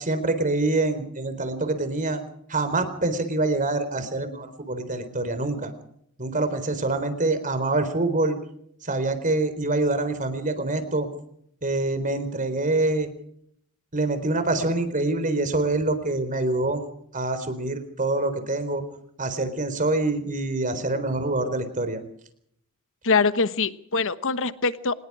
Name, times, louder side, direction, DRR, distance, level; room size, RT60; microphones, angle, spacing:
voice 1, 0.0-2.2 2.5-5.7 6.2-8.4 8.8-11.1 11.6-13.1 13.9-16.8 17.1-18.8 19.2-22.0, right 2 dB, 40° right, 10 dB, 4.1 m, -25 dB
voice 2, 23.0-24.9, left 4 dB, 65° left, 13 dB, 1.2 m, -23 dB
26.0 x 20.5 x 4.9 m, 0.68 s
head